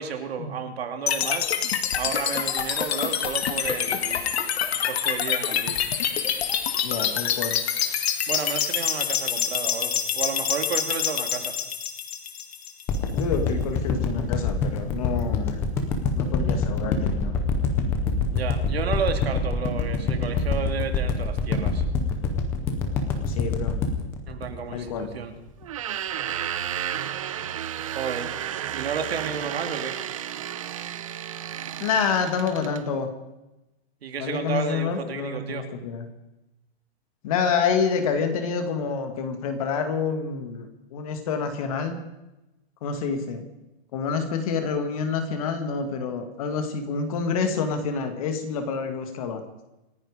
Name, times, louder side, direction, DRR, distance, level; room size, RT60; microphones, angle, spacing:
voice 1, 0.0-1.5 2.0-4.2 4.8-5.8 8.3-11.5 18.3-21.8 24.3-25.3 27.9-28.3 28.7-30.0 34.0-35.6, right 7 dB, 65° right, 6 dB, 2.8 m, -32 dB
sound 1, 1.1-13.1, left 8 dB, 70° left, 1.9 m, -26 dB
voice 2, 6.8-7.6 13.1-15.6 16.1-17.4 23.3-23.8 24.7-25.1 31.8-33.1 34.2-36.1 37.2-42.0 42.8-43.5 43.9-49.4, left 6 dB, 35° left, 6 dB, 2.1 m, -28 dB
sound 2, 12.9-25.2 25.6-25.7, left 4 dB, 5° left, 0.5 m, -25 dB
sound 3, 25.6-32.8, right 10 dB, 30° right, 0.6 m, -32 dB
27.0 x 10.5 x 5.1 m, 0.96 s
hypercardioid pair, 175°, 33 cm